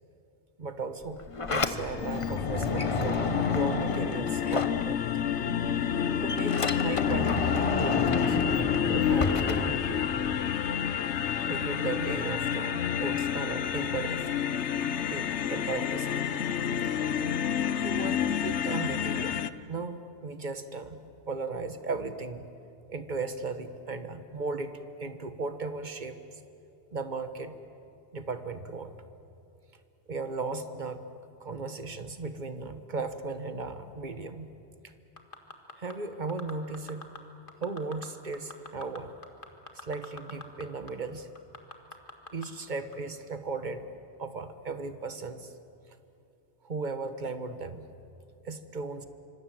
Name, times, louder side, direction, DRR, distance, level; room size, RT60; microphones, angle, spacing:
voice 1, 0.6-1.2 1.5-3.2 3.5-5.0 6.2-8.4 8.9-10.1 10.8-10.9 11.5-14.3 15.1-16.3 17.7-19.4 19.7-21.0 21.3-22.5 22.9-26.2 26.9-27.6 28.1-29.0 30.1-31.0 31.4-34.5 35.8-37.1 37.6-39.2 39.8-41.3 42.3-43.8 44.2-45.5 46.6-47.9 48.4-49.1, right 3 dB, 45° right, 9 dB, 1.4 m, -36 dB
Sliding door, 1.0-5.4 5.7-10.4, left 3 dB, 30° left, 0.9 m, -31 dB
sound 1, 1.3-19.5, left 8 dB, 85° left, 1.1 m, -29 dB
sound 2, 35.2-35.9 36.3-37.2 37.5-38.1 38.3-40.6 40.9-41.0 41.4-42.5 42.9-43.0, left 3 dB, 50° left, 2.0 m, -43 dB
26.0 x 25.5 x 7.7 m, 2.6 s
omnidirectional pair, 1.1 m